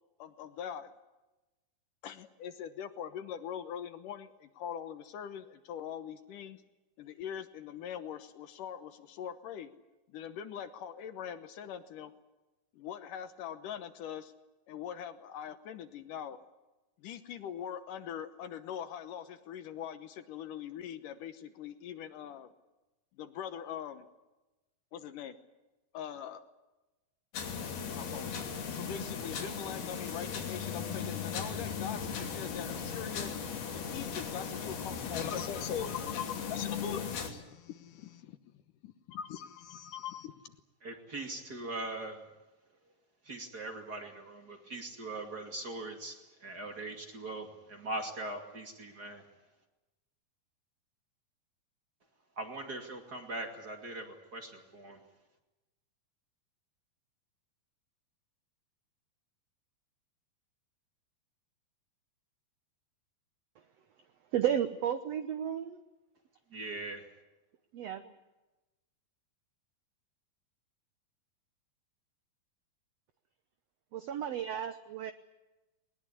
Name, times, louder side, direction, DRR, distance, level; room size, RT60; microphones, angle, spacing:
voice 1, 0.2-0.9 2.0-6.6 7.0-9.7 10.1-12.1 12.7-14.3 14.7-16.4 17.0-22.5 23.2-24.1 24.9-25.4 25.9-26.4 27.9-28.4 28.7-33.3 33.7-38.4 38.8-40.6, left 9 dB, 70° left, 10 dB, 2.5 m, -42 dB
sound 1, 27.3-37.3, left 6 dB, 85° left, 4.9 m, -37 dB
voice 2, 40.8-42.3 43.2-49.3 52.4-55.0 66.5-67.1, right 2 dB, 30° right, 4 dB, 2.4 m, -41 dB
voice 3, 64.3-65.8 67.7-68.1 73.9-75.1, right 9 dB, 75° right, 10 dB, 1.5 m, -33 dB
21.0 x 20.5 x 9.8 m, 1.1 s
omnidirectional pair, 4.3 m